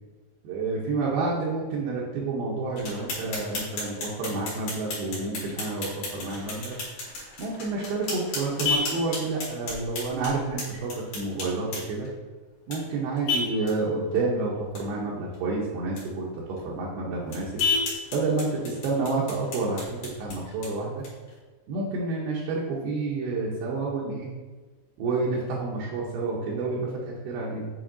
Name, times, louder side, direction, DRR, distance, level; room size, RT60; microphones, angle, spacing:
voice 1, 0.4-6.8 7.4-12.1 12.7-17.6 18.1-21.0 21.7-24.3 25.0-27.7, right 3 dB, 75° right, -5 dB, 2.5 m, -29 dB
sound 1, 2.8-12.1 12.7-12.8 13.2-13.3 13.7-13.8 14.1-14.2 14.6-14.8 15.3-15.4 16.0-16.1 16.6-16.7 17.3-21.3, left 2 dB, 55° left, 2.8 m, -37 dB
Vehicle horn car horn honking, 7.4-20.4, left 4 dB, 75° left, 2.1 m, -35 dB
8.7 x 4.1 x 2.6 m, 1.3 s
omnidirectional pair, 5.1 m